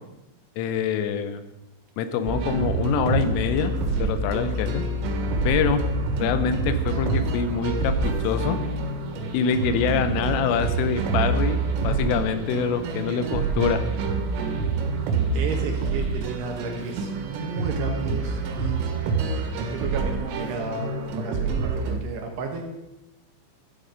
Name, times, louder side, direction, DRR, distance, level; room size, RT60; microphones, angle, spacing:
voice 1, 0.6-1.4 2.0-3.7 4.0-4.8 5.5-5.8 6.2-8.6 9.3-13.9, left 6 dB, 85° left, 10 dB, 3.4 m, -25 dB
sound 1, 2.3-22.0, right 4 dB, 85° right, 4.2 m, -27 dB
sound 2, 3.2-8.8, left 6 dB, 55° left, 3.4 m, -31 dB
voice 2, 15.3-18.8 19.7-22.6, right 4 dB, 65° right, 3 dB, 3.0 m, -33 dB
13.0 x 9.8 x 5.2 m, 0.94 s
omnidirectional pair, 5.7 m